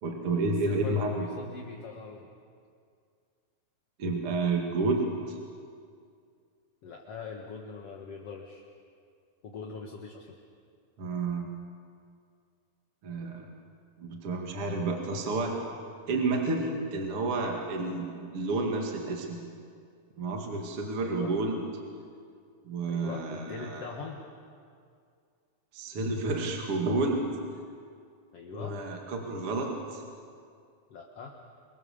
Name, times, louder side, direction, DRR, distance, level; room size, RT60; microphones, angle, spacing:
voice 1, 0.0-1.3 4.0-5.4 11.0-11.5 13.0-13.5 14.0-15.5 16.1-19.4 20.2-21.6 22.6-23.8 25.7-27.3 28.5-30.0, right 3 dB, 50° right, 1 dB, 3.0 m, -30 dB
voice 2, 0.6-2.3 6.8-8.6 9.4-10.4 15.1-15.4 21.0-21.3 22.8-24.2 28.3-28.8 30.9-31.4, left 5 dB, 55° left, 0 dB, 2.6 m, -42 dB
27.5 x 23.5 x 7.2 m, 2.2 s
omnidirectional pair, 3.4 m